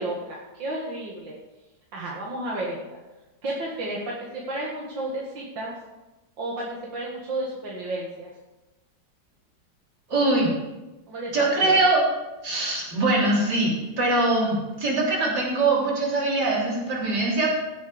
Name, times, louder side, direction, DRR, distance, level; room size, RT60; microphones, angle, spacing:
voice 1, 0.0-1.4 1.9-3.0 3.4-5.8 6.4-8.3 11.1-11.8, right 1 dB, 85° right, -4 dB, 2.5 m, -32 dB
voice 2, 10.1-10.5 11.3-12.0 12.4-17.5, right 2 dB, 65° right, -4 dB, 4.1 m, -22 dB
16.5 x 7.1 x 5.1 m, 1.1 s
omnidirectional pair, 2.0 m